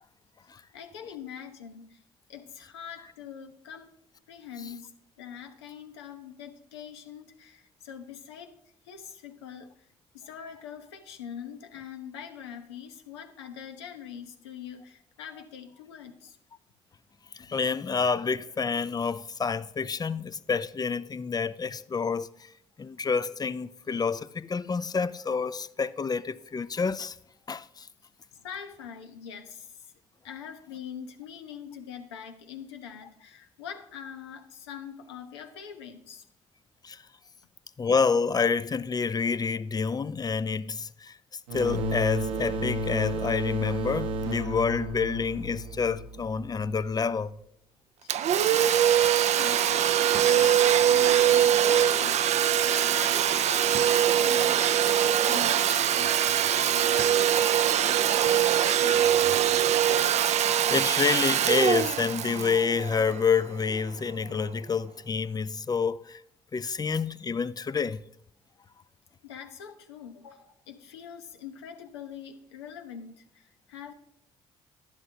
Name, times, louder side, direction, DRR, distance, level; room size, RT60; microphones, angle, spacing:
voice 1, 0.7-2.0 2.3-3.9 4.3-8.5 8.8-9.7 10.1-16.4 28.3-29.9 30.2-36.2 48.0-48.2 48.5-54.6 54.9-57.4 57.7-59.2 69.2-73.9, left 8 dB, 90° left, 0.9 m, -43 dB
voice 2, 17.3-22.3 22.8-27.1 27.5-27.9 36.8-37.0 37.8-41.2 41.5-47.4 60.0-60.4 60.7-66.2 66.5-68.0, left 5 dB, 30° left, 0.5 m, -28 dB
sound 1, 41.5-46.9, right 1 dB, 80° right, 1.1 m, -32 dB
Domestic sounds home sounds, 48.1-63.6, right 10 dB, 55° right, 0.5 m, -23 dB
11.5 x 11.0 x 2.8 m
hypercardioid pair, 50°, 14 cm